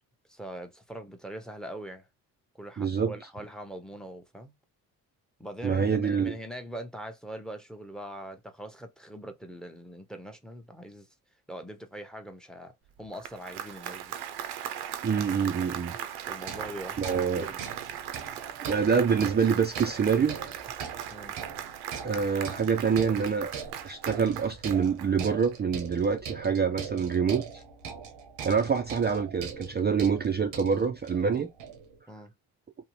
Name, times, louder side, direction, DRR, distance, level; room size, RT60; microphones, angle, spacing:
voice 1, 0.3-2.1 2.5-4.5 5.4-11.1 11.5-14.1 16.3-17.6 21.1-21.4 32.1-32.3, right 1 dB, ahead, 0.7 m, -42 dB
voice 2, 2.8-3.1 5.6-6.4 15.0-15.9 17.0-17.5 18.7-20.4 22.0-23.5 23.8-27.6 28.4-31.5, right 6 dB, 25° right, 0.4 m, -26 dB
Applause, 13.0-25.5, right 10 dB, 65° right, 0.6 m, -39 dB
sound 1, 16.4-32.0, right 7 dB, 90° right, 0.8 m, -41 dB
2.7 x 2.1 x 3.0 m
supercardioid pair, 60°, 42 cm